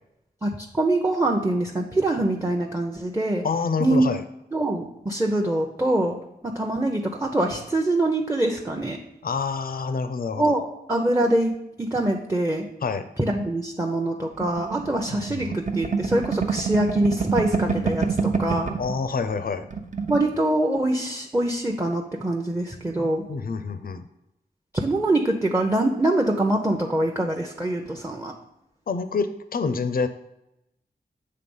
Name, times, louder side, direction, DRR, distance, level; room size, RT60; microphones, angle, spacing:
voice 1, 0.4-3.4 3.8-4.1 4.5-6.2 6.4-9.0 10.4-10.6 10.9-11.5 11.8-12.7 13.2-18.8 20.1-23.2 24.7-28.3, right 1 dB, 15° right, 1 dB, 0.7 m, -24 dB
voice 2, 3.4-4.2 9.2-10.6 12.8-13.1 15.1-15.6 18.8-19.7 23.3-24.0 28.9-30.1, left 5 dB, 60° left, 11 dB, 0.5 m, -27 dB
sound 1, 14.4-18.9 19.3-19.4 19.6-20.2, right 5 dB, 45° right, 0.8 m, -26 dB
7.6 x 3.4 x 5.4 m, 0.87 s
wide cardioid pair, 65°, 17 cm